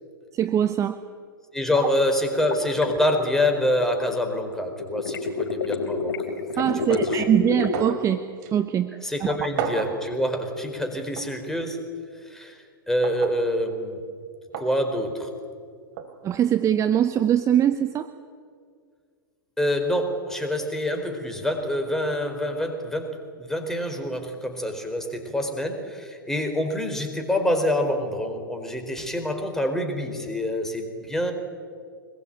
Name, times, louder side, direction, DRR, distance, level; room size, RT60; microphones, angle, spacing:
voice 1, 0.3-1.0 1.7-1.9 6.6-8.2 8.5-8.9 9.2-9.4 16.2-18.1, right 10 dB, 25° right, 11 dB, 1.0 m, -22 dB
voice 2, 1.5-6.1 6.5-7.2 9.0-11.8 12.2-12.6 12.9-14.0 14.6-15.3 19.6-23.1 23.4-31.3, left 1 dB, 5° left, 5 dB, 4.4 m, -26 dB
sound 1, 2.3-4.2 4.8-7.9, left 5 dB, 65° left, 3.7 m, -29 dB
sound 2, 7.7-8.1 8.4-8.5 9.6-10.0 11.2-11.3 13.0-13.4 14.5-14.7 16.0-16.1, right 8 dB, 50° right, 3.4 m, -31 dB
24.5 x 21.5 x 9.0 m, 2.1 s
figure-of-eight pair, 105°, 12 cm